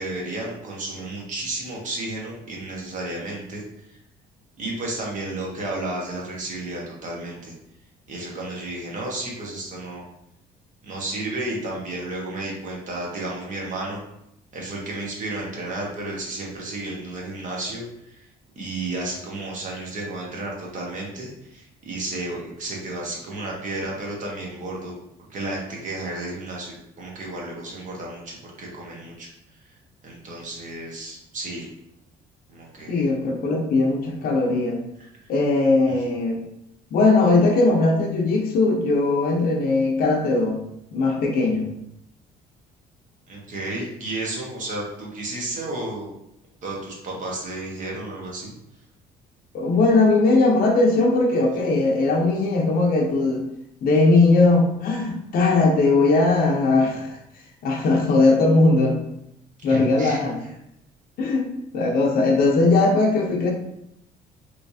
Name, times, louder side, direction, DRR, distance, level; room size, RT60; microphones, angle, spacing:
voice 1, 0.0-4.0 4.6-7.5 8.1-10.0 10.8-14.0 14.5-18.3 18.5-25.0 25.3-29.3 30.0-31.7 32.5-33.0 35.0-35.1 35.9-36.1 43.3-46.1 46.6-48.5 59.6-60.5, right 2 dB, 50° right, -2 dB, 1.2 m, -32 dB
voice 2, 32.9-34.8 35.3-36.4 36.9-40.6 40.9-41.7 49.5-53.4 53.8-57.2 57.6-59.0 59.6-60.4 61.2-63.5, left 3 dB, 60° left, 1 dB, 0.7 m, -19 dB
3.1 x 3.1 x 2.7 m, 0.78 s
cardioid pair, 110°, 17 cm